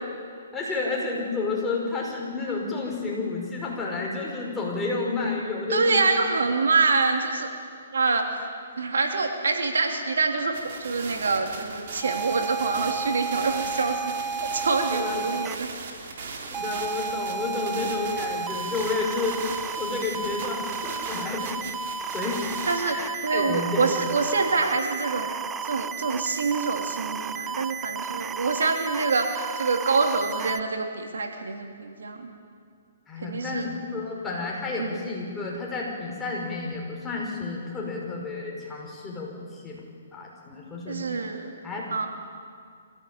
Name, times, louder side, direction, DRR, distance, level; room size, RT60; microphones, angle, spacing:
voice 1, 0.5-6.4 14.9-15.3 16.5-19.4 19.7-21.6 22.1-22.4 22.8-24.0 33.1-39.8 40.1-41.0 41.6-41.8, left 3 dB, 10° left, -3 dB, 5.6 m, -31 dB
voice 2, 5.7-7.5 7.9-8.3 8.8-10.5 10.8-14.0 14.4-15.7 22.6-23.0 23.2-25.3 25.6-32.3 33.2-33.7 34.8-35.0 40.9-41.5 41.9-42.1, right 4 dB, 85° right, 3 dB, 3.2 m, -25 dB
sound 1, 10.5-22.8, right 4 dB, 55° right, 4.0 m, -39 dB
sound 2, 12.0-15.6 16.5-30.6, right 6 dB, 15° right, 0.6 m, -33 dB
25.5 x 16.5 x 8.8 m, 2.2 s
hypercardioid pair, 145°, 0 cm